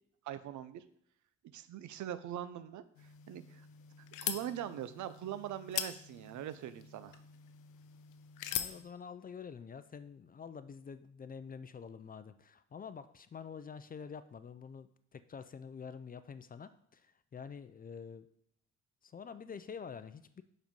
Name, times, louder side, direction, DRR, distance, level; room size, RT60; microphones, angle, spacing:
voice 1, 0.2-0.8 1.5-2.8 3.3-3.7 4.2-7.2, right 11 dB, 75° right, 13 dB, 0.6 m, -42 dB
sound 1, 3.0-8.8, left 11 dB, 85° left, 0.6 m, -42 dB
voice 2, 8.5-18.3 19.0-20.4, left 6 dB, 30° left, 12 dB, 0.4 m, -47 dB
5.4 x 5.0 x 5.3 m, 0.71 s
cardioid pair, 90°, 30 cm